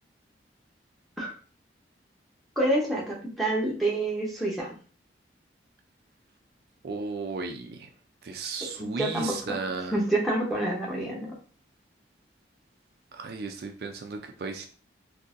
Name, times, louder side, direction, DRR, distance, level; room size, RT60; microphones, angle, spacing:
voice 1, 2.6-4.7 8.8-9.6 9.9-11.3, right 1 dB, ahead, -4 dB, 0.8 m, -27 dB
voice 2, 6.8-7.9 8.2-10.0 13.1-14.7, right 4 dB, 55° right, 4 dB, 0.4 m, -35 dB
3.8 x 2.7 x 2.5 m, 0.40 s
head